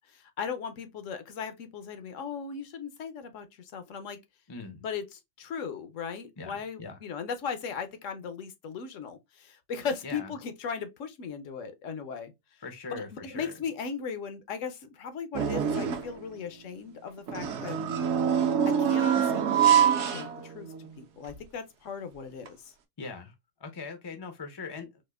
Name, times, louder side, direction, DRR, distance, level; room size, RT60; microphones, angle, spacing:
voice 1, 0.1-4.2 4.8-12.6 12.9-17.8 18.7-20.7 21.0-22.7, left 6 dB, 75° left, 1.0 m, -37 dB
voice 2, 4.5-4.8 6.4-7.0 10.0-10.3 12.6-13.5 23.0-23.3 23.6-25.0, left 4 dB, 35° left, 0.4 m, -41 dB
sound 1, 15.3-16.2 17.3-20.9 21.3-21.4 22.5-22.6, right 8 dB, 65° right, 0.9 m, -25 dB
4.2 x 2.4 x 2.3 m
omnidirectional pair, 1.4 m